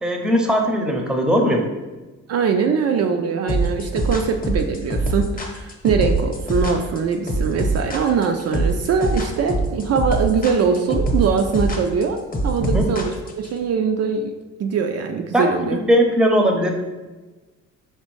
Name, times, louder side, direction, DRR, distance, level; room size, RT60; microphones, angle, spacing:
voice 1, 0.0-1.6 12.6-12.9 15.3-16.7, equal, 5° right, 2 dB, 0.6 m, -19 dB
voice 2, 2.3-13.1 13.4-14.3 14.6-15.8, right 5 dB, 55° right, 5 dB, 0.4 m, -22 dB
sound 1, 3.5-13.5, right 2 dB, 30° left, 0.9 m, -23 dB
4.3 x 3.3 x 3.1 m, 1.2 s
cardioid pair, 90°, 30 cm